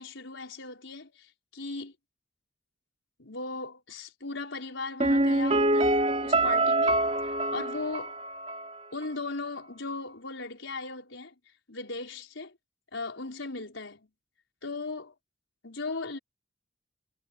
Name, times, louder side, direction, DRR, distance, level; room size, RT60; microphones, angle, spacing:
voice 1, 0.0-1.9 3.2-5.9 6.2-7.0 7.5-8.2 8.9-11.3 11.7-12.6 12.9-14.1 14.6-15.1 15.6-16.2, left 3 dB, 85° left, 4.8 m, -37 dB
Piano, 5.0-8.8 9.0-9.1, right 2 dB, 35° right, 2.9 m, -25 dB
head